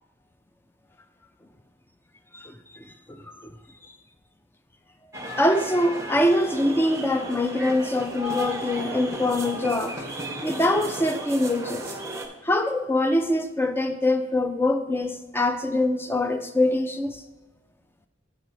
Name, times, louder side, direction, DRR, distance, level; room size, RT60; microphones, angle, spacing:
voice 1, 2.3-3.5 5.4-10.0 10.4-12.0 12.4-17.2, left 1 dB, 10° left, 8 dB, 0.4 m, -24 dB
sound 1, 5.1-12.3, right 1 dB, 15° right, 0.7 m, -34 dB
6.7 x 4.4 x 6.2 m, 1.2 s
head